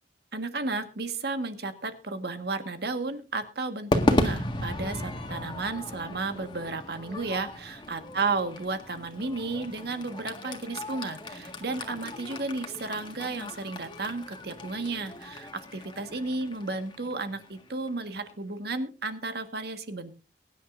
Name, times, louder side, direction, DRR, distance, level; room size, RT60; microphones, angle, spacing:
voice 1, 0.3-20.1, right 3 dB, 65° right, 8 dB, 1.6 m, -33 dB
Crowd / Fireworks, 3.9-18.3, left 1 dB, 25° left, 1.8 m, -34 dB
23.0 x 10.5 x 2.6 m, 0.31 s
head